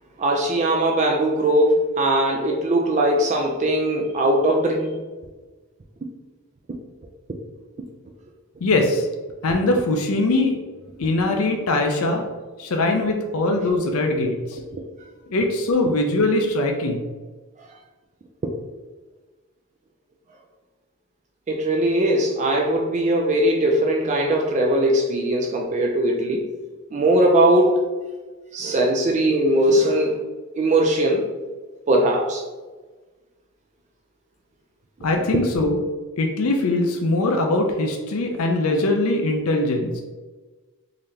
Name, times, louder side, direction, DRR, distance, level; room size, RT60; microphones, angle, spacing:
voice 1, 0.2-5.0 21.5-26.4 26.9-27.9 28.5-30.2 30.6-31.3 31.9-32.4, right 1 dB, 35° right, 1 dB, 0.3 m, -20 dB
voice 2, 8.6-9.1 9.4-10.6 11.0-12.2 12.6-14.6 15.3-17.0 35.0-35.8 36.2-40.0, left 2 dB, 75° left, 3 dB, 0.5 m, -21 dB
3.8 x 2.7 x 3.2 m, 1.3 s
head